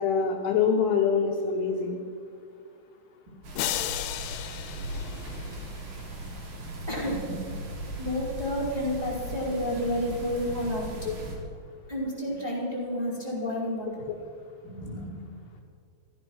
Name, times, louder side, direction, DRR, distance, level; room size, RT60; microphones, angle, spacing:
voice 1, 0.0-2.0 11.1-11.2, left 6 dB, 75° left, 3 dB, 2.7 m, -25 dB
sound 1, 3.4-11.4, right 1 dB, 65° right, 4.6 m, -38 dB
sound 2, 3.6-5.9, left 12 dB, 90° left, 3.2 m, -34 dB
voice 2, 6.5-7.6 7.9-10.9 11.9-14.1 14.6-15.1, equal, 10° right, -5 dB, 3.5 m, -31 dB
15.5 x 13.5 x 6.2 m, 2.3 s
omnidirectional pair, 5.3 m